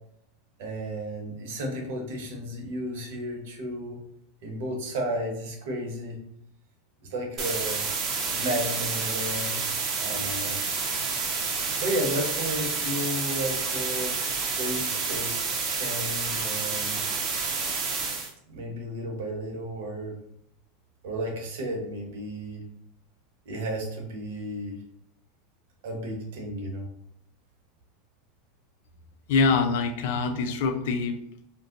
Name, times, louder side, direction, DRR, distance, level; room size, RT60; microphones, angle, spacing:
voice 1, 0.6-4.0 4.4-6.2 7.0-7.9 8.3-9.6 10.0-10.6 11.8-14.2 14.6-15.4 15.7-17.0 18.5-20.2 21.0-22.6 23.4-24.8 25.8-26.9, equal, 70° right, 1 dB, 1.0 m, -33 dB
sound 1, 7.4-18.3, right 4 dB, 45° right, 0.7 m, -29 dB
voice 2, 29.3-31.5, left 4 dB, 70° left, 6 dB, 0.4 m, -25 dB
2.6 x 2.2 x 3.7 m, 0.74 s
hypercardioid pair, 105°, 0 cm